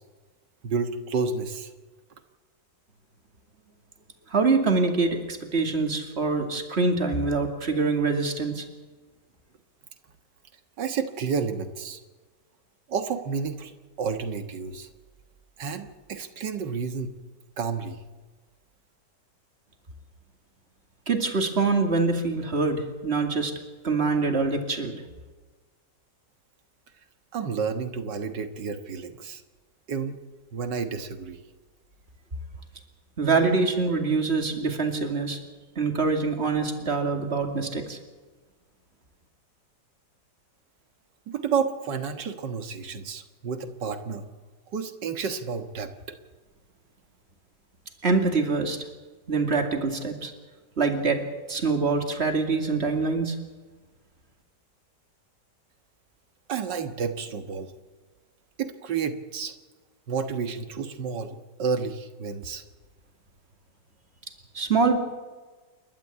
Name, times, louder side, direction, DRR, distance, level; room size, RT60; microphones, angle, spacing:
voice 1, 0.6-1.7 10.8-12.0 12.9-13.7 14.0-14.9 15.6-17.2 17.6-18.0 27.3-29.4 29.9-30.2 30.5-31.4 41.3-44.3 44.7-46.2 56.5-57.7 58.6-59.5 60.1-62.6, right 5 dB, 80° right, 8 dB, 2.1 m, -30 dB
voice 2, 4.3-8.6 21.1-23.5 23.8-25.0 33.2-35.4 35.8-38.0 48.0-48.8 49.3-50.3 50.8-53.4 64.5-65.0, right 4 dB, 35° right, 4 dB, 2.7 m, -25 dB
29.0 x 12.5 x 8.4 m, 1.3 s
omnidirectional pair, 1.9 m